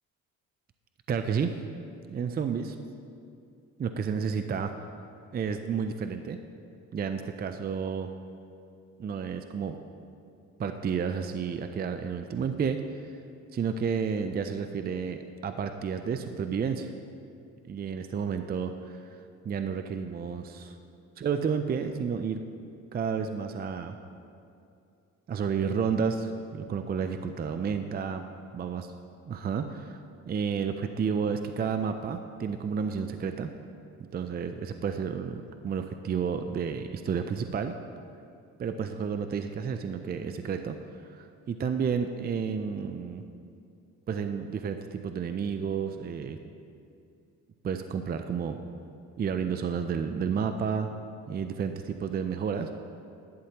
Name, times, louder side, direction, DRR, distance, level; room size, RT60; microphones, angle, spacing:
voice 1, 1.1-1.5 2.1-2.8 3.8-4.7 5.3-6.4 6.9-8.1 9.0-9.8 10.6-12.8 13.5-16.9 17.7-19.2 19.4-20.8 21.2-22.4 22.9-24.0 25.3-28.2 28.5-28.8 29.3-33.5 34.0-37.7 38.6-40.8 41.1-43.2 44.1-46.4 47.6-48.6 49.2-50.9 51.3-52.7, right 6 dB, 30° right, 8 dB, 0.4 m, -31 dB
11.0 x 10.0 x 2.9 m, 2.5 s
cardioid pair, 90°, 30 cm